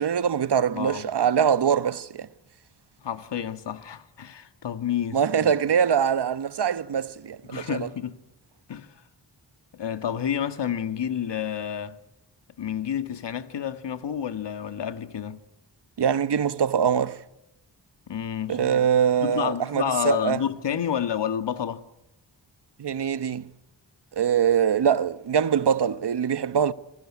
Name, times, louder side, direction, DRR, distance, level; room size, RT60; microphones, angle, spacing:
voice 1, 0.0-2.3 5.1-7.9 16.0-17.2 18.5-20.4 22.8-23.5 24.2-26.7, right 8 dB, 60° right, 1.2 m, -23 dB
voice 2, 0.7-1.1 3.0-5.5 7.5-8.2 8.7-8.9 9.7-12.0 12.6-15.4 18.1-18.9 19.2-21.8, left 9 dB, 65° left, 1.8 m, -29 dB
27.5 x 19.5 x 9.7 m
cardioid pair, 50°, 45 cm